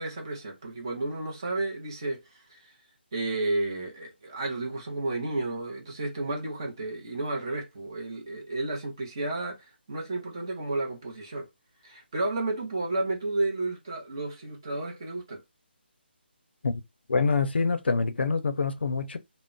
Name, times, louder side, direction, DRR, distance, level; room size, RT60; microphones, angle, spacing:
voice 1, 0.0-2.7 3.1-11.5 11.8-15.4, right 2 dB, 25° right, 0.6 m, -32 dB
voice 2, 17.1-19.2, left 4 dB, 70° left, 0.5 m, -26 dB
2.2 x 2.1 x 3.7 m
hypercardioid pair, 180°, 6 cm